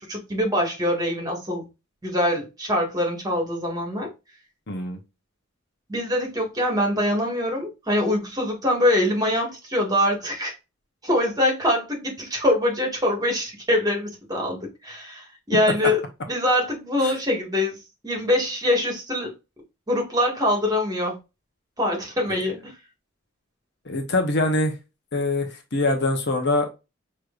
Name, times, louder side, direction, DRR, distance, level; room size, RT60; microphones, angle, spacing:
voice 1, 0.1-1.6 2.0-4.1 5.9-10.5 11.0-16.0 16.3-17.8 18.0-19.3 19.9-21.2 21.8-22.7, left 1 dB, 20° right, 1.8 m, -24 dB
voice 2, 4.7-5.0 23.9-24.7 25.1-26.7, left 2 dB, 55° left, 1.0 m, -23 dB
6.5 x 3.1 x 2.5 m
head